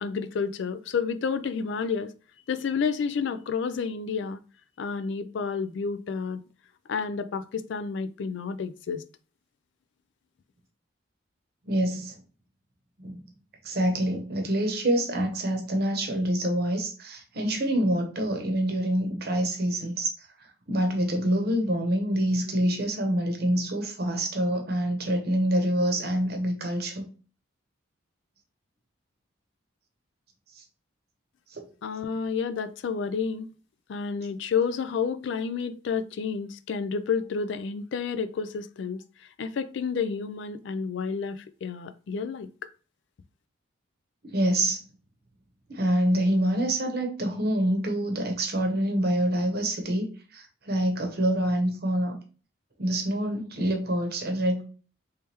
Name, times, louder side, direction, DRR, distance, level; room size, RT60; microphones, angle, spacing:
voice 1, 0.0-2.1 2.5-4.4 4.8-6.4 6.9-9.0 31.8-33.5 33.9-42.5, left 5 dB, 60° left, 0.3 m, -30 dB
voice 2, 11.7-12.2 13.0-13.2 13.6-20.1 20.7-27.1 30.6-30.7 31.5-31.6 44.2-44.8 45.7-50.1 50.3-52.2 52.8-54.6, right 1 dB, 50° right, 0.8 m, -26 dB
3.3 x 3.2 x 2.9 m
head